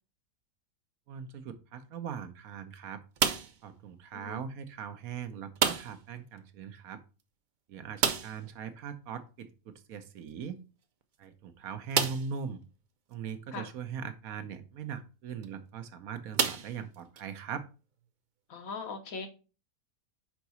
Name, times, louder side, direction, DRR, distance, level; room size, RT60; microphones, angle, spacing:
voice 1, 1.1-3.0 3.6-7.0 7.7-10.6 11.2-12.6 13.1-17.6, right 7 dB, 80° right, 1.2 m, -40 dB
sound 1, 3.2-3.7 5.6-6.1 6.4-6.5 6.8-6.9 8.0-8.5 10.3-10.4 11.0-11.1 11.9-12.4 13.1-13.2 15.2-15.5 16.3-17.2, right 6 dB, 55° right, 0.5 m, -30 dB
voice 2, 18.5-19.3, left 4 dB, 75° left, 1.5 m, -39 dB
5.9 x 4.6 x 4.1 m
omnidirectional pair, 1.5 m